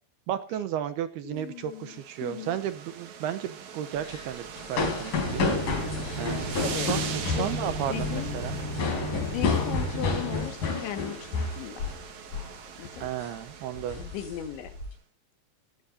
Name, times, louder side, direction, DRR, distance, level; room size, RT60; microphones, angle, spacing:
voice 1, 0.3-5.8 6.2-8.6 13.0-14.0, right 10 dB, 75° right, 11 dB, 2.7 m, -34 dB
voice 2, 1.2-2.6 6.4-6.9 7.2-8.4 9.2-11.9 12.8-13.1 14.0-14.7, left 10 dB, 80° left, 7 dB, 4.0 m, -37 dB
sound 1, 1.6-14.8, right 7 dB, 55° right, 2.3 m, -41 dB
sound 2, 4.0-12.1 12.3-12.6 13.0-13.3 13.7-14.9, left 4 dB, 50° left, 5.6 m, -31 dB
sound 3, 5.2-10.4, equal, 20° left, 3.1 m, -34 dB
17.5 x 16.0 x 2.6 m, 0.36 s
omnidirectional pair, 5.2 m